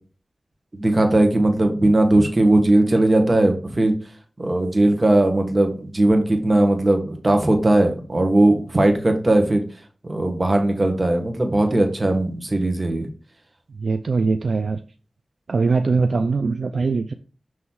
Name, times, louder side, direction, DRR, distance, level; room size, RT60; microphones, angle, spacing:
voice 1, 0.7-3.9 4.4-9.6 10.0-13.1, right 1 dB, 35° right, 4 dB, 1.3 m, -18 dB
voice 2, 13.8-14.8 15.5-17.1, right 4 dB, 80° right, 8 dB, 0.3 m, -21 dB
6.2 x 3.1 x 5.5 m, 0.39 s
wide cardioid pair, 65°, 0 cm